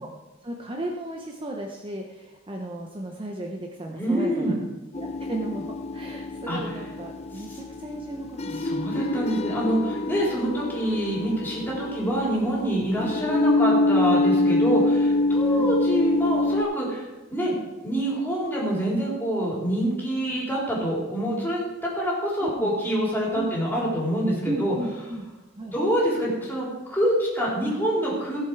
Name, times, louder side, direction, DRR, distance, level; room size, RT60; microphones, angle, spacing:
voice 1, 0.4-4.6 5.0-5.7 5.9-9.0 15.5-15.7 20.3-20.4 22.4-22.7 23.3-23.6 24.4-25.3 25.6-25.7, right 1 dB, 25° right, 1 dB, 0.8 m, -35 dB
voice 2, 4.0-4.6 6.5-6.6 7.3-7.6 8.5-17.5 17.8-24.7 25.7-28.4, right 1 dB, 10° left, -5 dB, 3.5 m, -26 dB
sound 1, 4.9-16.6, left 2 dB, 30° left, 0.6 m, -25 dB
16.0 x 7.0 x 4.6 m, 1.1 s
head